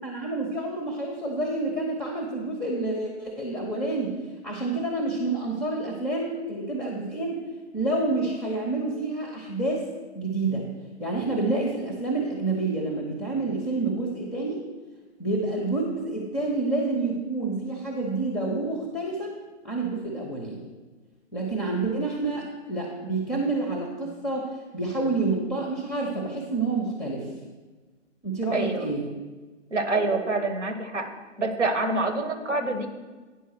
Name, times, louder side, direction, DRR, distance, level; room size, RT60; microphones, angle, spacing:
voice 1, 0.0-4.1 4.4-7.4 7.7-9.8 10.1-10.6 11.0-14.6 15.2-19.3 19.6-20.7 21.3-27.3 28.2-29.0, right 2 dB, ahead, -1 dB, 0.7 m, -28 dB
voice 2, 28.5-28.9 29.7-31.1 31.4-32.9, right 2 dB, 70° right, 7 dB, 1.3 m, -26 dB
9.2 x 5.4 x 6.3 m, 1.3 s
figure-of-eight pair, 125°, 37 cm